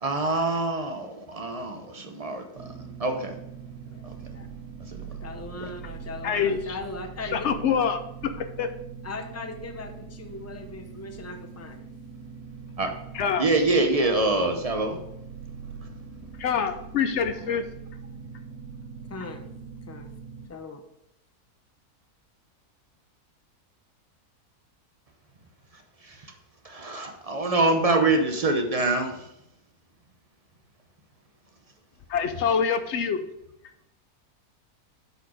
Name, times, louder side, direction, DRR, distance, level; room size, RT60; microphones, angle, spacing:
voice 1, 0.0-3.4 4.0-4.1 4.9-5.1 5.6-5.7 12.8-12.9 13.4-15.0 26.0-26.3 26.6-29.3, right 2 dB, 35° right, 5 dB, 0.6 m, -25 dB
sound 1, 2.6-20.5, right 6 dB, 80° right, 1.2 m, -42 dB
voice 2, 5.2-7.5 9.0-11.8 17.3-17.5 19.1-19.5 19.9-20.1 20.5-20.8, left 3 dB, 20° left, 5 dB, 0.4 m, -39 dB
voice 3, 6.2-6.8 7.3-8.0 8.6-8.7 13.1-13.5 16.4-17.6 32.1-33.2, left 7 dB, 60° left, 9 dB, 0.8 m, -25 dB
7.8 x 4.9 x 4.9 m, 0.79 s
omnidirectional pair, 1.6 m